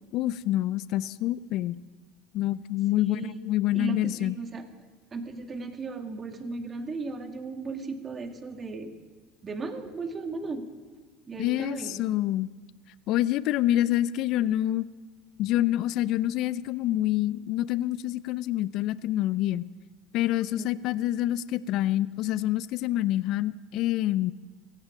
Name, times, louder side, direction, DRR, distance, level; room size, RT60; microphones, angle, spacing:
voice 1, 0.1-1.7 2.3-3.2 3.5-4.4 11.4-12.5 13.1-14.9 15.4-19.6 20.1-24.3, left 14 dB, 60° left, 18 dB, 0.4 m, -27 dB
voice 2, 3.0-3.4 3.7-4.6 5.1-8.9 9.4-10.6 11.3-12.0 20.6-20.9, right 3 dB, 30° right, 6 dB, 1.9 m, -36 dB
17.0 x 16.0 x 5.1 m, 1.4 s
hypercardioid pair, 90°, 0 cm